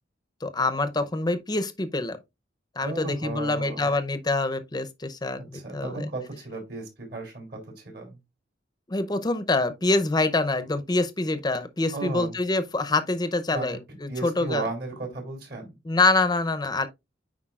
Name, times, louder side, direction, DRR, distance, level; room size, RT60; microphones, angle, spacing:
voice 1, 0.4-2.2 2.8-6.1 8.9-14.7 15.9-16.9, left 2 dB, 20° left, 0.6 m, -25 dB
voice 2, 2.8-3.9 5.4-8.2 11.9-12.3 13.5-13.8 14.1-15.7, right 2 dB, 60° right, 3.2 m, -35 dB
9.9 x 4.6 x 2.4 m
head